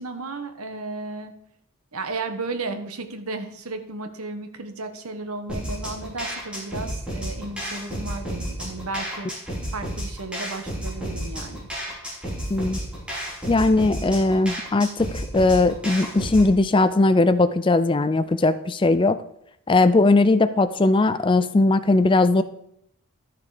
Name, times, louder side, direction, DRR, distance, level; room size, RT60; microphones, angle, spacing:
voice 1, 0.0-1.4 1.9-9.3 9.7-11.7, right 3 dB, 80° right, 8 dB, 1.2 m, -34 dB
sound 1, 5.5-16.5, equal, 5° right, 3.1 m, -32 dB
voice 2, 12.5-12.8 13.5-19.2 19.7-22.4, left 2 dB, 20° left, 13 dB, 0.4 m, -19 dB
12.5 x 6.8 x 4.9 m, 0.75 s
head